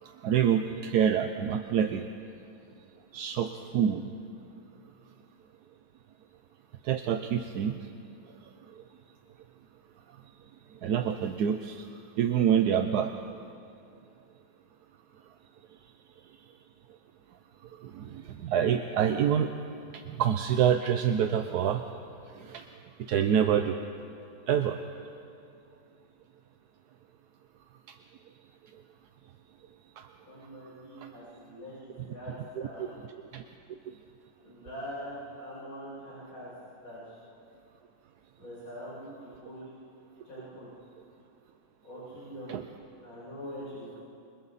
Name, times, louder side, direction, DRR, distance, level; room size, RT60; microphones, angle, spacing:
voice 1, 0.0-2.1 3.1-4.1 6.8-7.9 8.7-8.8 10.8-11.9 12.2-13.1 17.7-19.5 19.9-21.8 22.3-22.7 23.1-23.8 24.5-24.8 27.9-28.0 30.0-30.1 32.6-32.7 33.3-33.4 33.9-34.0 42.5-42.6, right 8 dB, 65° right, 6 dB, 1.1 m, -27 dB
voice 2, 30.3-32.3 32.6-32.9 34.4-36.5 36.8-37.2 38.4-39.7 40.2-40.7 41.8-42.5 43.0-44.0, equal, 80° left, -10 dB, 7.7 m, -43 dB
28.5 x 25.5 x 4.2 m, 2.5 s
omnidirectional pair, 2.2 m